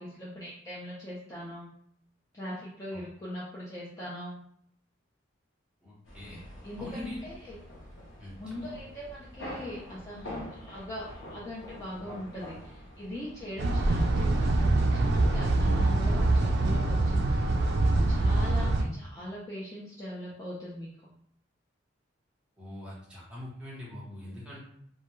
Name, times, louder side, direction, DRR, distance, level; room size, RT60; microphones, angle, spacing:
voice 1, 0.0-1.7 2.3-4.4 6.6-7.6 8.4-17.5 18.1-21.1, left 1 dB, 15° left, -8 dB, 0.4 m, -41 dB
voice 2, 5.8-6.4 6.8-7.2 8.2-8.3 18.3-18.5 22.6-24.6, left 1 dB, 5° right, -7 dB, 0.9 m, -43 dB
sound 1, 6.0-15.0, left 1 dB, 75° left, 0.7 m, -46 dB
sound 2, 13.6-18.8, right 2 dB, 60° right, 0.3 m, -24 dB
2.2 x 2.2 x 2.9 m, 0.68 s
head